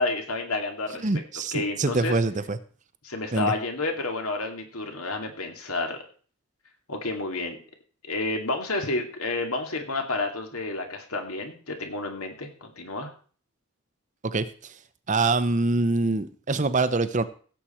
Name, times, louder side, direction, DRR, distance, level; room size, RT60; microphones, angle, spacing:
voice 1, 0.0-1.1 1.5-2.2 3.0-6.0 6.9-7.6 8.0-13.1, left 2 dB, 80° left, 4 dB, 2.4 m, -30 dB
voice 2, 1.0-2.6 3.3-3.5 14.2-14.4 15.1-17.2, right 3 dB, 35° right, 12 dB, 0.7 m, -24 dB
16.0 x 7.6 x 4.4 m, 0.42 s
head